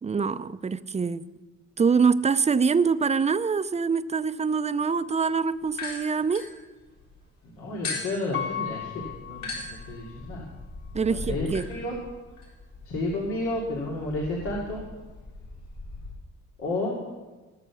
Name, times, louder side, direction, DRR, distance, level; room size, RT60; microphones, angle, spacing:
voice 1, 0.0-1.2 1.8-6.5 10.9-11.7, right 5 dB, 20° right, 13 dB, 0.5 m, -24 dB
sound 1, 5.7-7.2 7.8-16.1, left 3 dB, 65° left, 4.3 m, -39 dB
voice 2, 7.6-10.5 11.1-12.0 12.9-14.8 16.6-17.1, left 2 dB, 90° left, -4 dB, 2.6 m, -31 dB
Piano, 8.3-10.3 10.9-11.0, left 9 dB, 35° left, 1.5 m, -35 dB
18.5 x 6.7 x 7.0 m, 1.2 s
cardioid pair, 90°, 30 cm